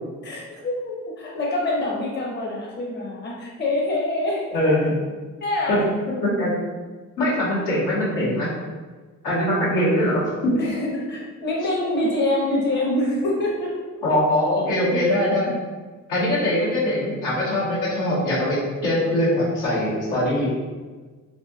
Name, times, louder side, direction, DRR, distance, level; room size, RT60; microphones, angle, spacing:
voice 1, 0.2-4.5 5.4-5.9 10.6-13.7, left 1 dB, 35° left, -4 dB, 0.7 m, -25 dB
voice 2, 4.5-5.0 5.7-5.8 6.2-6.5 7.2-8.5 9.2-10.5 14.0-15.5 16.1-20.5, left 1 dB, 90° left, -8 dB, 1.1 m, -22 dB
3.1 x 2.7 x 2.3 m, 1.4 s
cardioid pair, 90°, 30 cm